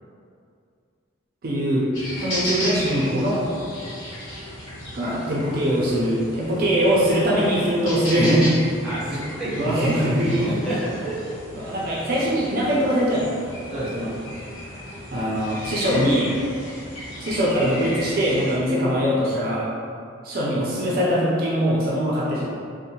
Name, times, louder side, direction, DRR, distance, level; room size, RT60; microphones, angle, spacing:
voice 1, 1.4-1.9 2.2-3.4 4.9-8.7 9.5-10.5 11.5-13.4 13.9-14.1 15.1-16.3 17.2-19.7 20.2-22.5, equal, 45° right, -6 dB, 0.4 m, -22 dB
sound 1, 1.9-18.6, left 1 dB, 75° left, 1.0 m, -35 dB
voice 2, 8.8-11.2 13.7-13.9, right 1 dB, 5° right, -11 dB, 0.6 m, -28 dB
2.6 x 2.1 x 2.7 m, 2.3 s
head